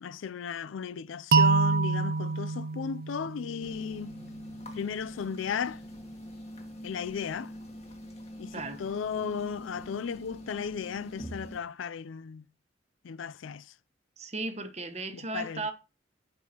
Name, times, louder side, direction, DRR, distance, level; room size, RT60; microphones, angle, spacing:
voice 1, 0.0-4.1 4.7-5.8 6.8-7.5 8.4-12.4 13.0-13.7 15.1-15.7, left 7 dB, 85° left, 0.4 m, -35 dB
sound 1, 1.3-4.2, right 4 dB, 50° right, 0.4 m, -26 dB
sound 2, 3.6-11.6, equal, 35° left, 1.7 m, -44 dB
voice 2, 14.2-15.7, right 3 dB, 35° right, 1.0 m, -35 dB
15.5 x 5.5 x 2.9 m
head